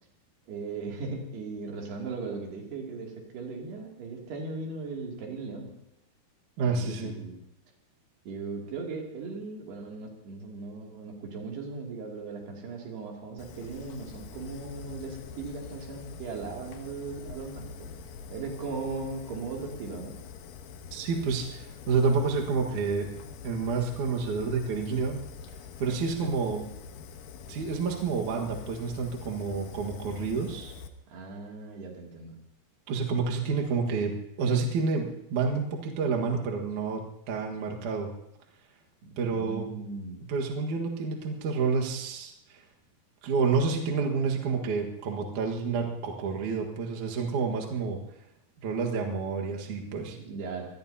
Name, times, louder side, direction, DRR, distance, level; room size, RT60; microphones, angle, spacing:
voice 1, 0.5-5.7 6.6-7.4 8.3-17.9 18.3-20.1 25.9-26.0 26.2-26.4 31.1-32.3 39.0-40.2 50.2-50.7, right 4 dB, 85° right, 0 dB, 4.8 m, -38 dB
voice 2, 6.6-7.2 20.9-23.1 23.4-25.2 25.8-26.6 27.5-30.7 32.9-37.0 37.3-38.1 39.2-39.7 40.3-42.6 43.2-48.0 48.6-50.2, right 5 dB, 55° right, 0 dB, 2.8 m, -29 dB
Fire, 13.4-30.9, left 6 dB, 70° left, 2.5 m, -45 dB
24.5 x 19.5 x 2.8 m, 0.79 s
omnidirectional pair, 4.5 m